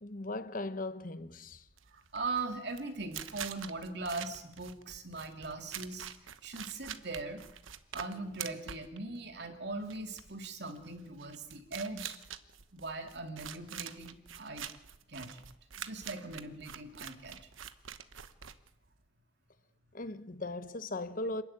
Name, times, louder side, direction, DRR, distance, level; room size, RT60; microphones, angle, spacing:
voice 1, 0.0-1.7 19.9-21.4, left 2 dB, 45° left, 1.0 m, -38 dB
sound 1, 1.7-19.1, right 9 dB, 80° right, 1.1 m, -46 dB
voice 2, 1.9-6.1 6.4-7.4 7.9-12.2 12.7-14.7 15.1-15.4 15.8-17.4, right 3 dB, 55° right, 2.8 m, -40 dB
26.5 x 14.0 x 9.7 m
head